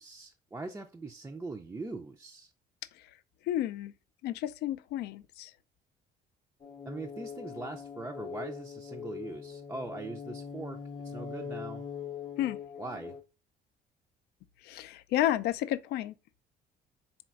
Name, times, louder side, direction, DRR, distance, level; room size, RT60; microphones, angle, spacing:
voice 1, 0.0-2.5 6.9-11.8 12.8-13.2, right 3 dB, 15° right, 0.4 m, -41 dB
voice 2, 3.5-3.9 4.2-5.5 12.4-12.6 14.6-16.1, left 12 dB, 75° left, 0.4 m, -31 dB
sound 1, 6.6-13.2, left 6 dB, 25° left, 0.6 m, -42 dB
4.2 x 3.8 x 2.3 m
cardioid pair, 110°, 17 cm